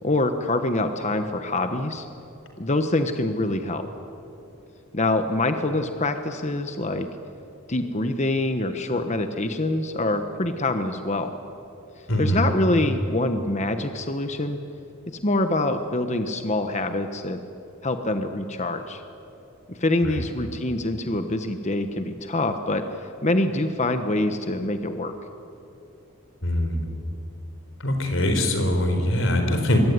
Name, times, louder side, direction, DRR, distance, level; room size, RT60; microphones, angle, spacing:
voice 1, 0.0-2.1 2.6-3.9 4.9-7.1 7.7-11.3 12.2-14.6 15.2-17.4 17.8-19.0 19.7-25.1, left 2 dB, 35° left, 7 dB, 1.2 m, -25 dB
voice 2, 12.1-12.4 20.1-20.2 26.4-26.8 27.8-29.8, left 1 dB, 65° left, 5 dB, 4.5 m, -23 dB
26.0 x 22.5 x 9.6 m, 2.8 s
head